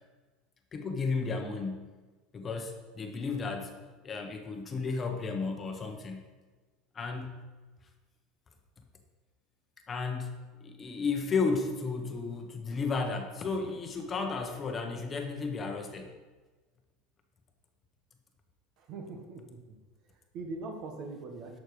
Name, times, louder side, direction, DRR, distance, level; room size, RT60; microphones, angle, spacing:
voice 1, 0.7-1.9 2.3-3.8 4.0-6.3 6.9-7.4 9.9-16.1, left 4 dB, 25° left, 4 dB, 1.2 m, -33 dB
voice 2, 18.8-19.8 20.0-21.6, right 3 dB, 50° right, 4 dB, 1.6 m, -42 dB
11.5 x 6.5 x 5.1 m, 1.3 s
supercardioid pair, 140°, 0 cm